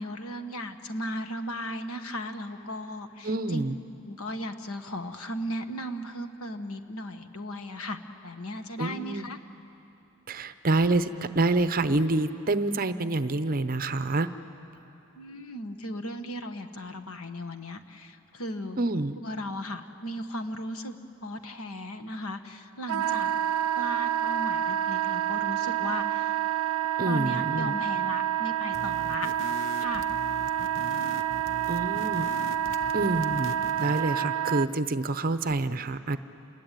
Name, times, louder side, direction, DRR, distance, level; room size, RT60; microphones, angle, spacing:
voice 1, 0.0-3.6 4.1-9.4 15.1-18.8 19.2-21.0 21.2-23.3 23.8-26.4 27.1-29.3 29.8-30.1, left 1 dB, 75° left, 8 dB, 1.4 m, -36 dB
voice 2, 3.2-3.8 8.8-9.3 10.3-14.3 18.8-19.2 27.0-27.7 31.7-32.3 32.9-36.2, right 2 dB, 40° right, 11 dB, 0.8 m, -27 dB
Wind instrument woodwind instrument, 22.9-34.7, right 11 dB, 75° right, 0.5 m, -28 dB
sound 1, 28.7-34.2, left 2 dB, 60° left, 0.9 m, -42 dB
28.0 x 21.0 x 9.1 m, 2.9 s
head